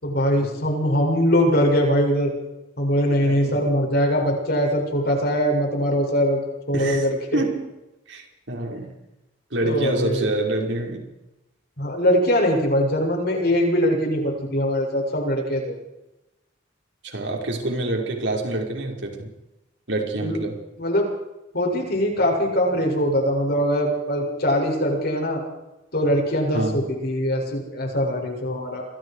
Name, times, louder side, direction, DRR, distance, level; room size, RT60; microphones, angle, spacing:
voice 1, 0.0-2.3 2.8-6.4 6.7-7.4 9.6-10.3 11.8-15.8 20.2-20.4 20.8-21.1 21.5-25.4 25.9-28.9, equal, 55° left, 1 dB, 7.3 m, -22 dB
voice 2, 3.2-3.6 6.7-7.1 7.3-7.6 8.1-8.9 9.5-11.0 17.0-19.3 19.9-20.6 26.5-26.8, right 2 dB, 70° right, 1 dB, 5.4 m, -27 dB
29.5 x 23.5 x 5.0 m, 0.97 s
head